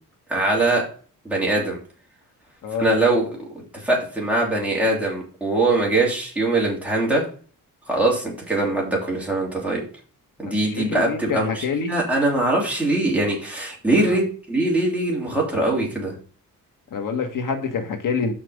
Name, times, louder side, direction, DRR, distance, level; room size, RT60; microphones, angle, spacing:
voice 1, 0.3-0.8 1.2-1.8 2.8-3.5 3.7-7.2 7.9-9.8 10.4-14.2 14.5-16.1, right 2 dB, 5° right, -4 dB, 3.0 m, -22 dB
voice 2, 10.5-11.9 14.0-14.2 16.9-18.3, left 5 dB, 70° left, 5 dB, 1.6 m, -26 dB
6.0 x 5.9 x 6.5 m, 0.41 s
wide cardioid pair, 175°, 34 cm